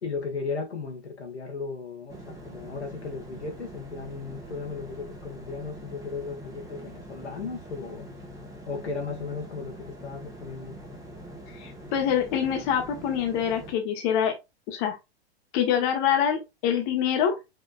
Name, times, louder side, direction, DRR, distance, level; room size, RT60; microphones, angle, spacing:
voice 1, 0.0-8.1 8.7-10.8, left 4 dB, 85° left, 1.7 m, -36 dB
sound 1, 2.1-13.7, right 1 dB, 10° right, 1.4 m, -44 dB
voice 2, 11.6-14.4 14.7-15.0 15.5-17.4, left 8 dB, 45° left, 1.3 m, -25 dB
5.4 x 3.8 x 2.4 m
hypercardioid pair, 105°, 32 cm